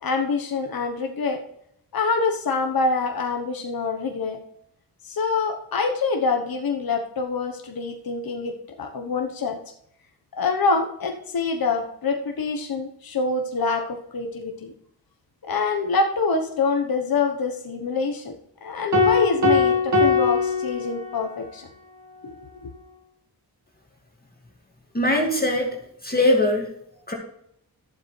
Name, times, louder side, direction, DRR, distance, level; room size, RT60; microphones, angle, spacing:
voice 1, 0.0-1.4 1.9-4.4 5.0-9.6 10.4-14.7 15.5-18.4 18.6-21.7 22.2-22.7, left 4 dB, 65° left, 3 dB, 1.1 m, -25 dB
sound 1, 18.9-21.4, left 4 dB, 45° right, 1.9 m, -21 dB
voice 2, 24.9-25.7 26.0-26.7 27.1-27.2, left 1 dB, 25° left, 0 dB, 2.1 m, -21 dB
11.5 x 7.6 x 3.3 m, 0.72 s
cardioid pair, 55°, 39 cm